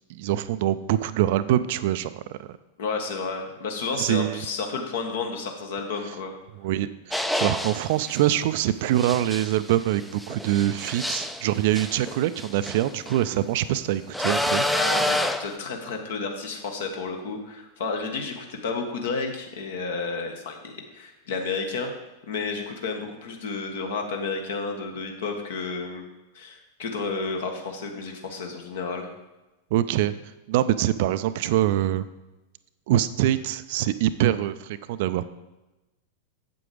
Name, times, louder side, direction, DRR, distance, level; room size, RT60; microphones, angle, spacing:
voice 1, 0.1-2.5 4.0-4.4 6.6-14.7 29.7-30.2 30.5-32.1 32.9-35.3, right 13 dB, 50° right, 13 dB, 0.4 m, -24 dB
voice 2, 2.8-6.3 14.7-21.9 22.3-26.0 26.3-29.1, left 4 dB, 60° left, 4 dB, 1.4 m, -31 dB
sound 1, 7.1-8.2 9.0-13.2 14.1-15.6, left 1 dB, 5° left, 0.5 m, -28 dB
7.9 x 7.8 x 4.8 m, 1.0 s
figure-of-eight pair, 90°, 0 cm